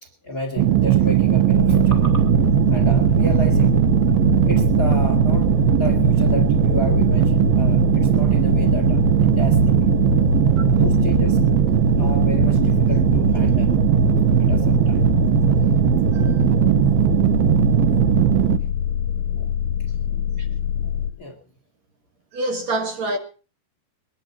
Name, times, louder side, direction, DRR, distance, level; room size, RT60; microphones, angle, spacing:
voice 1, 0.0-2.2 2.7-3.7 4.5-9.8 10.7-11.4 12.0-13.7 14.4-15.1 21.1-21.4, left 1 dB, 35° left, 1.8 m, -32 dB
sound 1, 0.6-18.6, right 11 dB, 80° right, 2.8 m, -18 dB
sound 2, 1.5-21.1, left 9 dB, 75° left, 2.2 m, -25 dB
voice 2, 22.3-23.2, right 1 dB, 50° right, 2.8 m, -26 dB
22.0 x 10.5 x 4.2 m
omnidirectional pair, 4.5 m